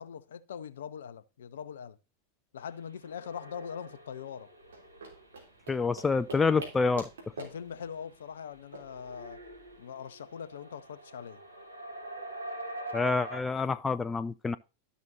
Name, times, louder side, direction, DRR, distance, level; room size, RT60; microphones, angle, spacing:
voice 1, 0.0-2.0 2.5-4.5 7.4-9.4 9.8-11.4, left 7 dB, 65° left, 0.7 m, -42 dB
sound 1, 2.9-13.4, right 1 dB, 80° right, 1.3 m, -44 dB
sound 2, 4.6-9.8, right 2 dB, 65° right, 3.3 m, -47 dB
voice 2, 5.7-7.1 12.9-14.6, left 4 dB, 15° left, 0.4 m, -27 dB
12.5 x 6.0 x 2.7 m
figure-of-eight pair, 90°, 0 cm